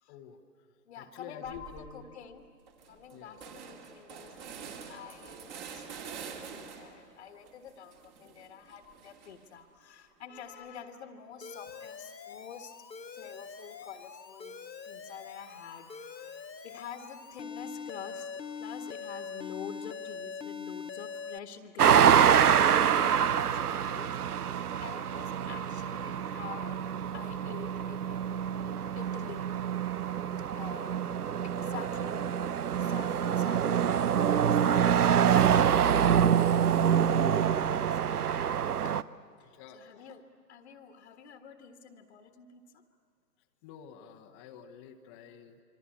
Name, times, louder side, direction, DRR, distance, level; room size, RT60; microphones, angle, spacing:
voice 1, 0.1-0.4 1.0-2.2 3.1-3.4 28.3-28.7 39.4-40.1 43.6-45.6, left 8 dB, 20° left, 4 dB, 1.1 m, -49 dB
voice 2, 0.9-2.4 2.8-12.7 13.1-14.6 14.8-24.2 24.8-26.8 27.1-28.4 28.9-29.5 30.6-31.0 31.4-32.3 32.8-36.4 36.8-38.1 38.8-39.1 39.4-42.8, left 7 dB, 40° left, 5 dB, 1.6 m, -48 dB
sound 1, 1.4-1.9 2.3-2.4 2.7-7.1 7.5-9.6, right 6 dB, 25° right, 2.5 m, -46 dB
Alarm, 11.4-21.4, left 5 dB, 85° left, 1.1 m, -43 dB
sound 2, 21.8-39.0, right 8 dB, 65° right, 0.8 m, -26 dB
27.0 x 24.5 x 8.5 m, 2.4 s
figure-of-eight pair, 135°, 49 cm